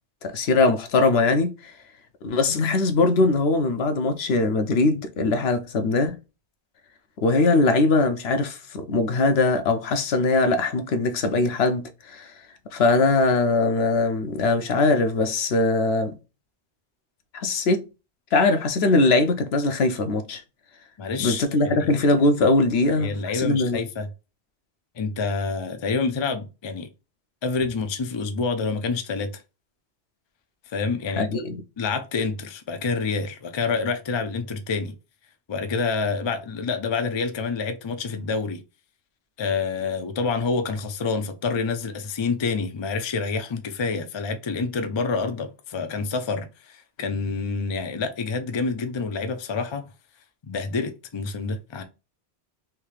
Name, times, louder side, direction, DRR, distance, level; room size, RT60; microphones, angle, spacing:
voice 1, 0.2-1.7 2.2-6.2 7.2-12.3 12.7-16.2 17.3-17.9 18.3-20.4 21.2-23.8 31.2-31.6, left 3 dB, 70° left, 0.9 m, -21 dB
voice 2, 21.0-22.0 23.0-24.1 24.9-26.9 27.4-29.4 30.7-31.4 31.8-34.9 35.5-38.6 39.4-49.9 50.4-51.8, left 4 dB, 40° left, 0.4 m, -27 dB
3.5 x 2.7 x 3.1 m
omnidirectional pair, 1.1 m